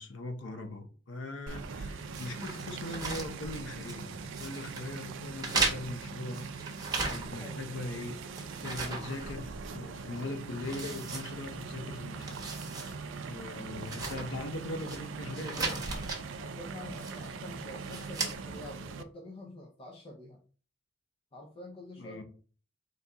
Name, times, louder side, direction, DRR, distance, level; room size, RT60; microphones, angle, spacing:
voice 1, 0.0-6.5 7.1-8.3 8.6-12.5 13.3-16.1 22.0-22.2, left 2 dB, 75° left, 0.8 m, -40 dB
sound 1, 1.5-19.0, right 4 dB, 75° right, 0.4 m, -41 dB
sound 2, 2.1-4.0 4.3-4.9 5.4-7.5 7.9-9.8 10.1-10.2 10.6-11.8 12.1-12.9 13.3-13.4 13.8-15.0 15.3-16.2 16.9-17.4 17.8-18.3, right 3 dB, 20° right, 1.0 m, -36 dB
voice 2, 13.5-14.0 16.4-20.4 21.3-22.2, left 1 dB, 30° left, 0.6 m, -47 dB
4.1 x 2.7 x 3.5 m
head